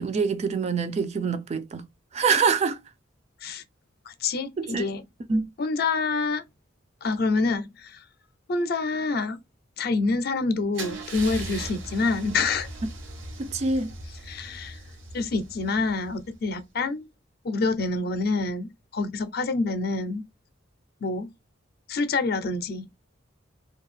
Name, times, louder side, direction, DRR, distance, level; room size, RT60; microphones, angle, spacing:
voice 1, 0.0-1.9 2.1-2.8 4.6-4.9 5.3-5.5 13.4-13.9, right 5 dB, 35° right, 0.4 m, -25 dB
voice 2, 4.1-5.0 5.6-6.4 7.0-8.0 8.5-9.4 9.8-12.7 14.3-14.8 15.1-17.1 17.4-20.2 21.0-21.3 21.9-22.9, left 3 dB, 55° left, 0.5 m, -27 dB
Car / Engine starting / Idling, 10.7-16.6, right 2 dB, 90° right, 0.9 m, -39 dB
2.6 x 2.3 x 3.1 m
head